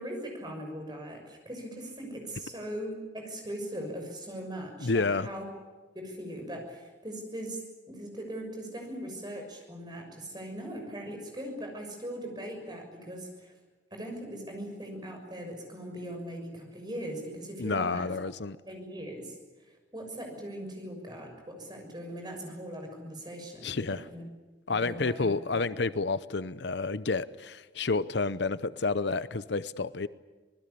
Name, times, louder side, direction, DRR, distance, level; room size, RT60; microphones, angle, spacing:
voice 1, 0.0-5.4 5.9-7.6 7.9-13.5 13.9-18.1 18.7-24.3 24.7-25.6, right 1 dB, 25° right, 2 dB, 6.6 m, -40 dB
voice 2, 4.8-5.3 17.6-18.6 23.6-24.0 24.7-30.1, left 3 dB, 70° left, 15 dB, 0.8 m, -30 dB
26.5 x 20.0 x 8.6 m, 1.3 s
head